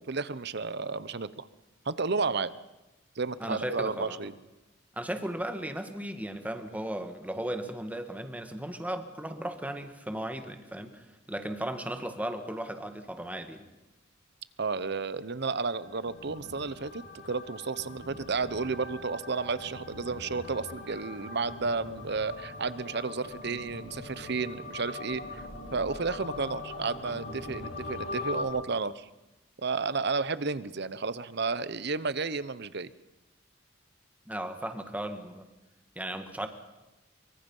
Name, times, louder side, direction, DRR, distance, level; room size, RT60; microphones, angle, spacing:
voice 1, 0.0-1.5 1.8-2.5 3.2-4.4 14.6-25.4 25.7-29.1 29.6-32.9, right 4 dB, 60° right, 16 dB, 0.9 m, -32 dB
voice 2, 3.4-4.2 5.0-13.7 34.3-35.5 36.0-36.5, right 1 dB, 10° right, 7 dB, 1.8 m, -36 dB
sound 1, 15.6-28.4, left 2 dB, 85° left, 4.7 m, -41 dB
24.0 x 24.0 x 5.6 m, 1.0 s
head